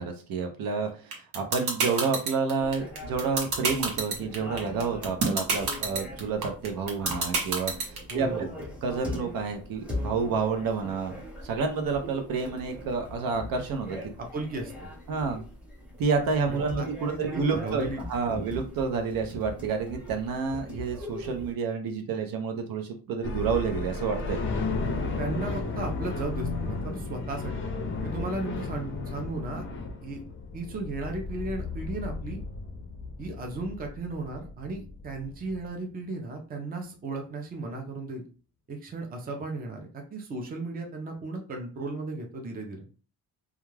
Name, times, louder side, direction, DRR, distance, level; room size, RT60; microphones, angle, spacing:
voice 1, 0.0-8.5 8.8-14.0 15.1-15.4 16.0-24.4, right 5 dB, 70° right, 4 dB, 0.7 m, -29 dB
sound 1, 1.1-8.1, right 4 dB, 90° right, 1.1 m, -26 dB
sound 2, 2.6-21.5, left 1 dB, 5° right, 0.9 m, -41 dB
voice 2, 8.1-8.5 14.2-14.7 16.5-18.5 25.2-27.6 28.0-29.6 30.0-30.2 30.5-32.4 33.2-38.2 38.7-42.9, right 2 dB, 25° right, 2 dB, 0.5 m, -35 dB
sound 3, 23.2-35.7, left 3 dB, 35° left, 0.5 m, -34 dB
2.4 x 2.3 x 3.1 m, 0.36 s
cardioid pair, 150°, 36 cm